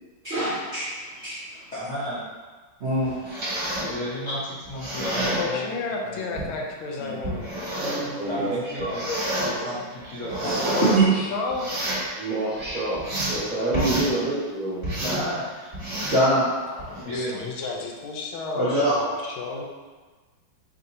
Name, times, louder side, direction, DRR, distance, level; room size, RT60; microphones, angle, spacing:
voice 1, 0.2-1.4 2.8-3.2 7.8-8.5 9.0-9.2 9.5-9.7 10.4-10.5 10.9-11.1 16.1-16.5 18.6-19.0, right 1 dB, 70° right, -9 dB, 0.6 m, -24 dB
voice 2, 1.7-2.2 3.8-6.4 7.0-7.2 8.3-9.0 9.4-11.1 15.0-15.4 17.1-17.4, equal, 50° left, -10 dB, 0.9 m, -33 dB
sound 1, 3.1-3.9 4.6-5.4 6.4-6.5 7.2-8.1 8.8-9.5 10.0-11.0 11.5-12.1 12.6-13.4 13.7-14.1 14.8-15.2 15.7-16.3 16.8-17.0, right 1 dB, 30° right, 1.6 m, -29 dB
voice 3, 5.3-7.5 10.7-11.8 13.7-14.1 16.7-19.6, left 4 dB, 85° left, 0 dB, 1.4 m, -32 dB
voice 4, 8.1-9.0 12.2-15.0, right 2 dB, 5° right, -10 dB, 0.9 m, -28 dB
5.1 x 2.7 x 2.7 m, 1.4 s
omnidirectional pair, 2.2 m